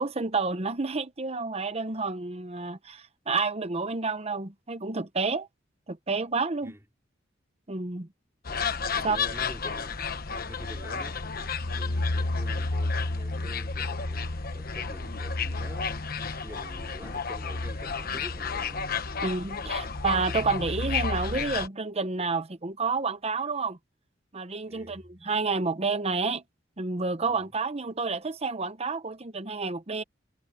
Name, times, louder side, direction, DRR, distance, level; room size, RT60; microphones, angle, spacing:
voice 1, 0.0-5.5 5.9-6.7 7.7-8.1 9.0-9.2 19.2-23.8 24.3-26.4 26.8-30.0, right 4 dB, 35° right, 1.0 m, -30 dB
sound 1, 8.5-21.7, left 4 dB, 50° left, 1.2 m, -31 dB
voice 2, 8.5-10.0 10.5-11.5 11.7-16.0 16.4-19.2 19.6-20.0 24.6-25.0 27.3-27.5, equal, 15° right, 4.3 m, -47 dB
head